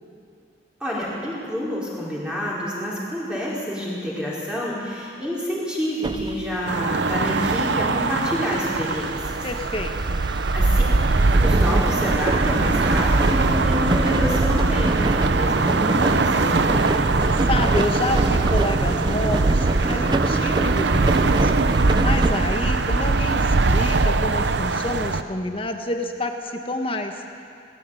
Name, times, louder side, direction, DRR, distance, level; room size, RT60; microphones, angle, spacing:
voice 1, 0.8-9.4 10.5-16.8, equal, 5° right, -7 dB, 4.9 m, -28 dB
sound 1, 6.0-23.6, right 2 dB, 25° right, 0.4 m, -26 dB
sound 2, 6.7-25.2, right 3 dB, 70° right, 0.7 m, -21 dB
voice 2, 9.4-10.3 16.5-27.4, left 1 dB, 30° left, 5 dB, 1.4 m, -29 dB
19.0 x 16.5 x 9.3 m, 2.4 s
head